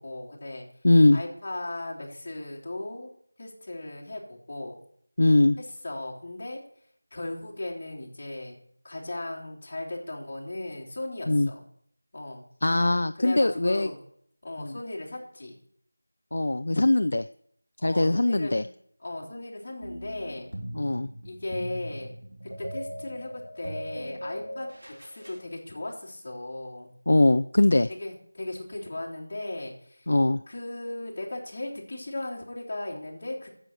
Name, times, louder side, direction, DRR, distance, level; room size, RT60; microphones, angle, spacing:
voice 1, 0.0-0.7 1.1-3.1 3.4-4.8 5.6-6.6 7.1-8.6 8.8-11.7 12.1-12.4 13.1-14.0 14.4-15.6 17.8-18.7 19.0-20.5 21.2-22.1 22.4-24.7 25.0-26.9 28.0-30.1 30.5-33.5, left 2 dB, 25° left, -6 dB, 3.4 m, -37 dB
voice 2, 0.8-1.2 5.2-5.6 11.3-11.5 12.6-13.9 14.6-14.7 16.3-17.3 17.8-18.6 20.7-21.1 27.1-27.9 30.1-30.4, left 2 dB, 50° left, 10 dB, 0.4 m, -21 dB
sound 1, 19.8-25.4, equal, 85° right, 5.6 m, -39 dB
12.5 x 7.6 x 8.1 m, 0.67 s
figure-of-eight pair, 175°, 0 cm